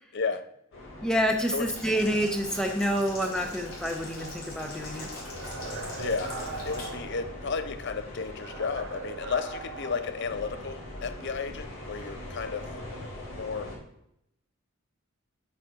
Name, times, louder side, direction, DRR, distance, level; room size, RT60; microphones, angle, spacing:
voice 1, 0.1-0.5 1.5-1.7 6.0-12.7 13.3-13.7, left 5 dB, 60° left, 0.5 m, -33 dB
sound 1, 0.7-13.8, left 1 dB, 75° left, 2.4 m, -42 dB
voice 2, 1.0-5.1, equal, 5° left, 0.7 m, -28 dB
Boiling, 1.7-6.9, left 2 dB, 90° left, 3.0 m, -43 dB
sound 2, 5.3-7.8 8.3-10.8, right 3 dB, 65° right, 1.1 m, -41 dB
8.3 x 6.6 x 2.5 m
head